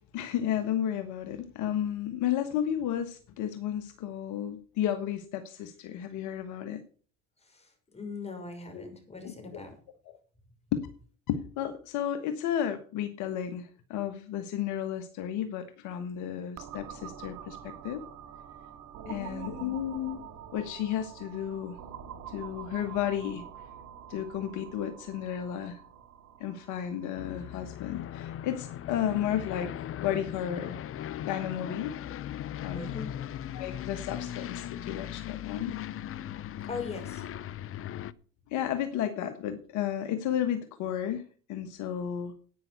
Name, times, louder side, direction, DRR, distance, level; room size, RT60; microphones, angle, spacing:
voice 1, 0.1-6.8 8.7-8.9 9.2-9.6 10.0-10.2 10.7-10.9 11.3-18.0 19.1-20.2 20.5-21.8 22.3-23.4 24.1-25.8 26.4-30.8 31.2-31.9 32.6-32.9 33.5-35.7 38.5-41.2 41.5-42.3, left 10 dB, 65° left, 9 dB, 1.5 m, -33 dB
voice 2, 7.9-9.7 19.0-19.8 32.7-33.1 36.7-37.2, left 4 dB, 20° left, 5 dB, 5.9 m, -40 dB
sound 1, 16.6-30.1, right 9 dB, 60° right, 2.2 m, -47 dB
Aircraft, 27.2-38.1, left 11 dB, 45° left, 0.7 m, -38 dB
11.0 x 9.2 x 6.8 m, 0.42 s
supercardioid pair, 85°, 32 cm